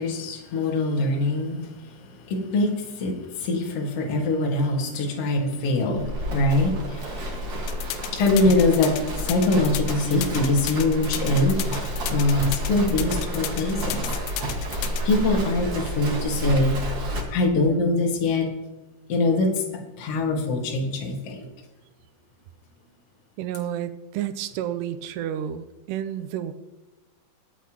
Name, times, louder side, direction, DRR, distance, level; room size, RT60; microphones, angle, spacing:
voice 1, 0.0-14.1 15.0-16.8 17.3-18.5 19.1-21.5, left 2 dB, 45° left, 0 dB, 2.3 m, -24 dB
Livestock farm animals working animals, 5.9-17.2, equal, 45° right, 1.5 m, -30 dB
sound 1, 7.7-15.0, left 13 dB, 85° left, 2.8 m, -33 dB
voice 2, 23.4-26.5, right 10 dB, 85° right, 11 dB, 2.7 m, -31 dB
22.0 x 8.3 x 3.0 m, 1.1 s
omnidirectional pair, 4.8 m